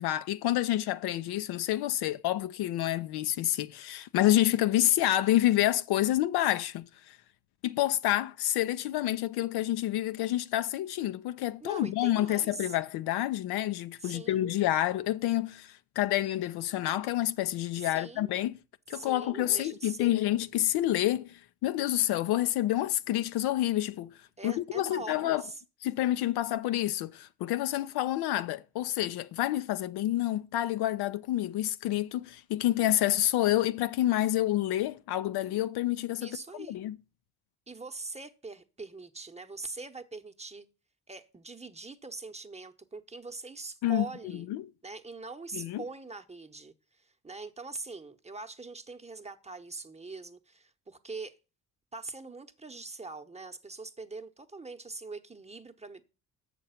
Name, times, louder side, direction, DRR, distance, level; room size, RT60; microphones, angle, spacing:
voice 1, 0.0-7.2 7.6-18.5 18.9-24.1 24.4-25.4 25.8-37.0 43.8-44.1 44.3-44.6 45.5-45.8, left 14 dB, 70° left, 0.6 m, -28 dB
voice 2, 11.6-12.7 14.0-14.5 17.8-18.3 18.9-20.2 24.4-25.6 36.2-36.8 37.7-40.6 41.1-44.5 44.8-51.4 51.9-56.0, right 3 dB, 15° right, 0.9 m, -43 dB
7.7 x 6.6 x 5.7 m
supercardioid pair, 70°, 40 cm